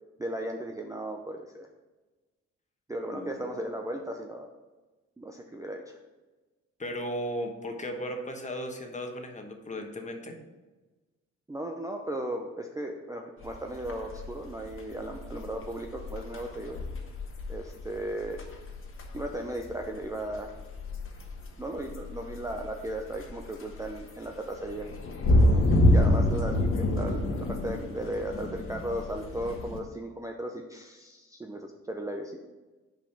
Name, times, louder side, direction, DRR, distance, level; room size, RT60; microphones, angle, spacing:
voice 1, 0.2-1.7 2.9-4.5 5.2-6.0 11.5-16.8 17.5-18.4 19.1-20.6 21.6-24.9 25.9-32.4, right 1 dB, 10° right, 2 dB, 0.6 m, -36 dB
voice 2, 6.8-10.4, equal, 25° left, 3 dB, 1.2 m, -36 dB
sound 1, 13.4-29.8, left 1 dB, 45° left, 1.3 m, -28 dB
5.5 x 5.0 x 5.9 m, 1.2 s
cardioid pair, 90°, 30 cm